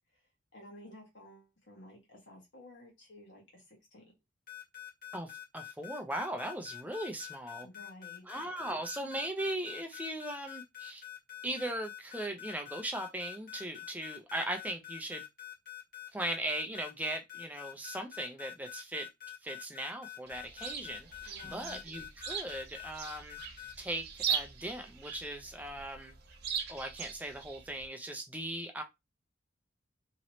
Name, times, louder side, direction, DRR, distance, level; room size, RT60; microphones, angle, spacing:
voice 1, 0.5-4.0 7.6-8.6 21.2-21.8, left 1 dB, 65° left, 1.3 m, -53 dB
sound 1, 4.5-23.7, left 14 dB, 50° left, 1.1 m, -46 dB
voice 2, 5.1-7.7 8.3-11.0 11.4-15.3 16.1-19.1 19.4-23.4 23.8-26.1 26.7-28.8, right 1 dB, 10° right, 0.5 m, -38 dB
Chirp tweet, 20.3-27.9, right 7 dB, 50° right, 0.7 m, -40 dB
3.0 x 2.8 x 2.9 m
head